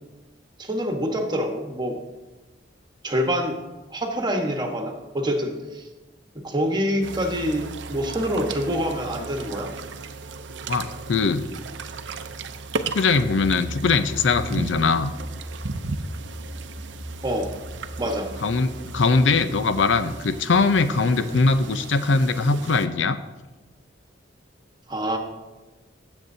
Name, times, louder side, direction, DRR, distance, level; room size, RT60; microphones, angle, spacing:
voice 1, 0.6-2.0 3.0-3.6 3.9-5.9 6.3-9.7 17.2-17.5 18.0-18.3 24.9-25.2, equal, 25° right, 3 dB, 1.2 m, -26 dB
sound 1, 7.0-22.9, right 4 dB, 80° right, 0.6 m, -36 dB
voice 2, 10.7-11.5 12.9-15.1 18.4-23.2, left 4 dB, 90° left, 11 dB, 0.6 m, -21 dB
sound 2, 13.1-20.8, equal, ahead, 0.5 m, -39 dB
17.0 x 7.1 x 2.7 m, 1.2 s
head